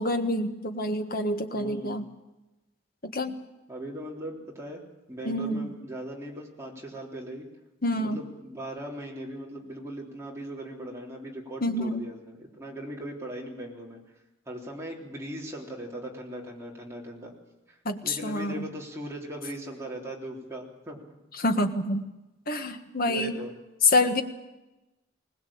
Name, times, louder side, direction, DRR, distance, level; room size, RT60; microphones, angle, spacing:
voice 1, 0.0-2.0 3.0-3.4 5.2-5.7 7.8-8.2 11.6-12.1 17.8-18.7 21.4-22.1 22.5-23.3 23.9-24.2, left 1 dB, 45° left, 6 dB, 1.6 m, -27 dB
voice 2, 1.5-2.0 3.7-4.8 5.1-7.5 7.9-14.0 14.5-17.3 17.7-21.0 23.0-23.6, right 1 dB, 15° right, -2 dB, 3.5 m, -39 dB
21.0 x 19.5 x 8.7 m, 1.0 s
head